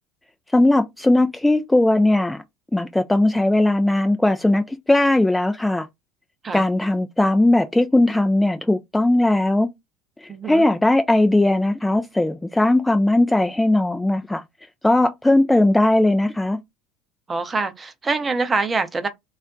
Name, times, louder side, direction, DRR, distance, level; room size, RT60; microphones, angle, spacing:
voice 1, 0.5-2.4 2.7-5.9 6.5-9.7 10.2-14.4 14.8-16.6, left 1 dB, 10° left, 0.3 m, -18 dB
voice 2, 10.3-10.6 17.3-19.1, right 3 dB, 25° right, 0.6 m, -24 dB
2.3 x 2.1 x 3.6 m
figure-of-eight pair, 65°, 0 cm